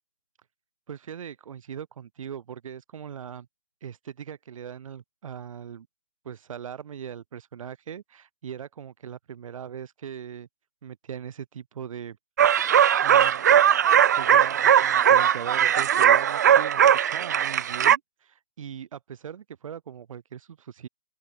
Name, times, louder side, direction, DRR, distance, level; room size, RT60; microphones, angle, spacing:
voice 1, 0.9-3.5 3.8-5.9 6.2-10.5 10.8-12.2 13.0-13.5 14.2-20.9, right 8 dB, 55° right, 5.4 m, -40 dB
sound 1, 12.4-18.0, right 9 dB, 25° right, 0.3 m, -19 dB
open air
hypercardioid pair, 155°, 21 cm